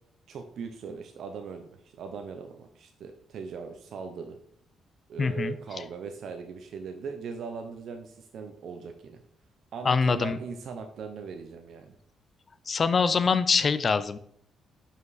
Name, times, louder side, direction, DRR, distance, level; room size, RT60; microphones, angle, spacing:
voice 1, 0.3-1.7 2.0-4.4 5.1-9.2 9.7-11.9, right 5 dB, 65° right, 5 dB, 0.6 m, -39 dB
voice 2, 5.2-5.5 9.8-10.4 12.7-14.2, left 5 dB, 40° left, 14 dB, 0.4 m, -24 dB
5.1 x 5.1 x 4.0 m, 0.67 s
cardioid pair, 90°, 0 cm